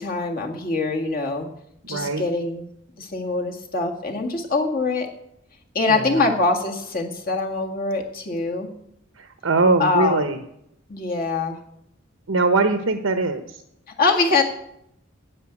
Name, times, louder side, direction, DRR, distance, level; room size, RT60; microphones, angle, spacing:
voice 1, 0.0-1.5 1.9-2.7 3.0-5.1 5.7-8.7 9.8-10.3 10.9-11.6 14.0-14.4, left 3 dB, 45° left, 1 dB, 1.9 m, -23 dB
voice 2, 1.9-2.2 5.9-6.3 9.2-10.4 12.3-13.6, right 3 dB, 90° right, 6 dB, 1.0 m, -22 dB
10.0 x 8.8 x 8.3 m, 0.77 s
head